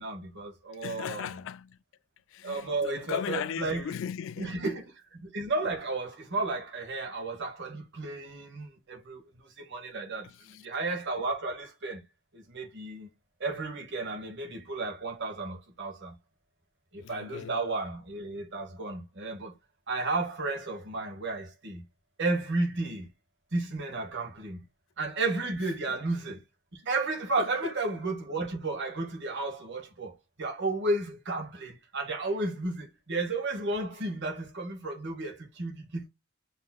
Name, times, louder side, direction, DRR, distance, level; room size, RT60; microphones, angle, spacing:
voice 1, 0.0-1.4 2.4-4.0 4.4-12.0 12.3-13.1 13.4-16.1 16.9-19.5 19.9-21.8 22.2-23.1 23.5-24.6 25.0-26.4 26.7-36.1, right 2 dB, 50° right, 1.3 m, -33 dB
voice 2, 0.8-1.8 2.3-4.6 17.0-17.5, left 8 dB, 60° left, 0.3 m, -36 dB
6.6 x 2.8 x 2.3 m
head